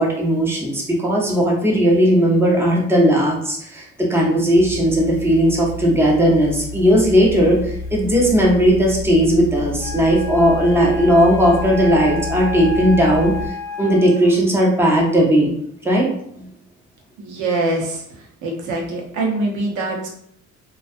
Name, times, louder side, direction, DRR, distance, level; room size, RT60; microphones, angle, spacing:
voice 1, 0.0-15.5 15.8-16.1 16.4-16.5, equal, 10° right, -2 dB, 0.7 m, -17 dB
sound 1, 4.5-13.5, left 2 dB, 45° left, 0.4 m, -31 dB
Wind instrument woodwind instrument, 9.8-14.4, left 4 dB, 70° left, 0.8 m, -31 dB
voice 2, 17.2-18.0 18.4-20.1, right 2 dB, 75° right, 0 dB, 0.8 m, -23 dB
2.3 x 2.3 x 2.5 m, 0.69 s
cardioid pair, 85°, 30 cm